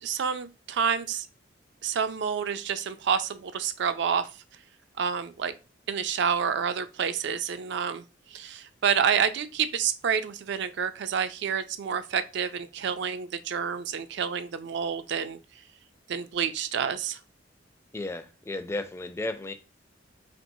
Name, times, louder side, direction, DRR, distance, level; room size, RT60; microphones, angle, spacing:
voice 1, 0.0-1.3 1.8-4.3 5.0-5.5 5.9-8.0 8.3-15.4 16.1-17.2, right 7 dB, 65° right, 0.4 m, -28 dB
voice 2, 17.9-19.5, left 2 dB, 15° left, 0.3 m, -34 dB
4.3 x 2.9 x 2.6 m
head